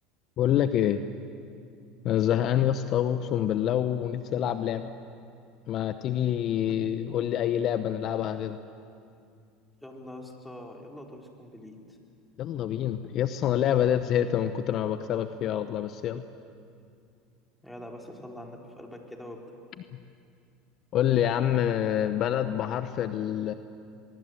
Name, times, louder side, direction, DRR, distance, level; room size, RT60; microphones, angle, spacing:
voice 1, 0.4-1.0 2.0-4.9 5.7-8.6 12.4-16.2 20.9-23.5, left 10 dB, 50° left, 10 dB, 0.9 m, -26 dB
voice 2, 9.8-12.0 17.6-19.4, left 1 dB, 5° left, 0 dB, 4.2 m, -44 dB
23.0 x 22.5 x 8.0 m, 2.4 s
hypercardioid pair, 85°, 0 cm